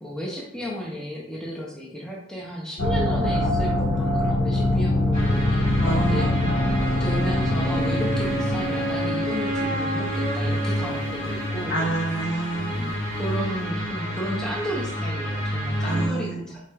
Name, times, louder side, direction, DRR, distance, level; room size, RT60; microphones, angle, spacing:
voice 1, 0.0-5.7 6.0-6.4 7.0-11.9 12.7-16.6, equal, 5° left, -3 dB, 0.6 m, -33 dB
sound 1, 2.8-9.5, left 1 dB, 75° left, 0.7 m, -23 dB
sound 2, 5.1-16.1, equal, 25° left, 1.3 m, -29 dB
voice 2, 5.8-6.7 11.7-12.8 15.8-16.4, right 2 dB, 60° left, -2 dB, 1.1 m, -28 dB
Wind instrument woodwind instrument, 7.6-11.9, right 1 dB, 40° right, 0.6 m, -30 dB
4.9 x 3.9 x 2.2 m, 0.69 s
head